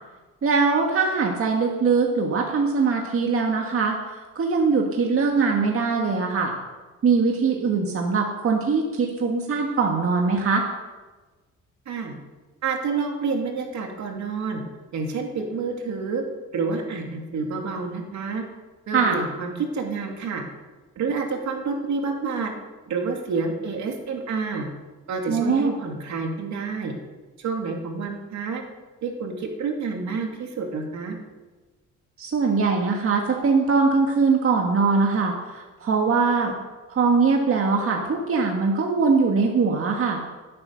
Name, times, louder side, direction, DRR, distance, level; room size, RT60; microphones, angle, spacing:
voice 1, 0.4-4.0 4.4-6.5 7.0-10.6 18.9-19.2 25.3-25.7 32.2-36.6 36.9-40.2, right 4 dB, 45° right, 1 dB, 1.8 m, -22 dB
voice 2, 12.6-14.6 14.9-16.2 16.5-18.4 18.9-20.4 21.0-22.5 22.9-24.7 25.1-26.9 27.4-28.6 29.0-31.2, right 4 dB, 70° right, 2 dB, 2.6 m, -28 dB
16.0 x 8.7 x 6.4 m, 1.3 s
cardioid pair, 90°, 30 cm